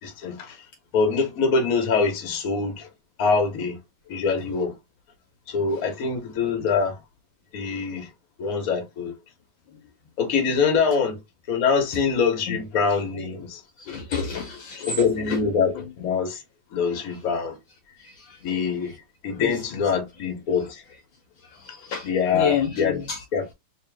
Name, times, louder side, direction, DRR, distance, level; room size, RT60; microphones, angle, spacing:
voice 1, 0.0-0.6 0.9-2.9 3.2-3.8 4.1-4.7 5.5-7.0 7.5-8.1 8.4-9.2 10.2-11.2 11.5-13.6 14.9-16.4 16.7-17.6 18.4-18.9 19.2-20.8 22.0-23.0 23.3-23.5, left 5 dB, 50° left, 1.2 m, -24 dB
voice 2, 13.8-15.0 19.4-19.5 21.6-23.2, left 7 dB, 65° left, 1.4 m, -28 dB
3.3 x 2.9 x 3.3 m
omnidirectional pair, 2.4 m